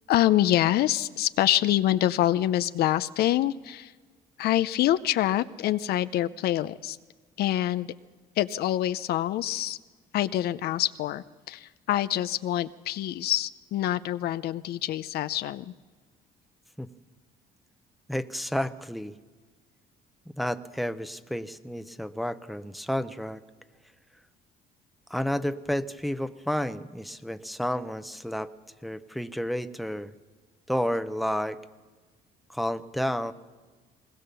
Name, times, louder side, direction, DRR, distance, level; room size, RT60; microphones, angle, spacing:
voice 1, 0.1-3.9 4.4-7.0 7.4-7.9 8.4-9.8 10.1-15.7, left 13 dB, 70° left, 13 dB, 0.6 m, -26 dB
voice 2, 18.1-19.1 20.3-23.4 25.1-28.5 28.8-30.1 30.7-31.6 32.5-33.3, equal, ahead, 10 dB, 0.8 m, -31 dB
20.5 x 20.0 x 6.9 m, 1.4 s
cardioid pair, 110°, 17 cm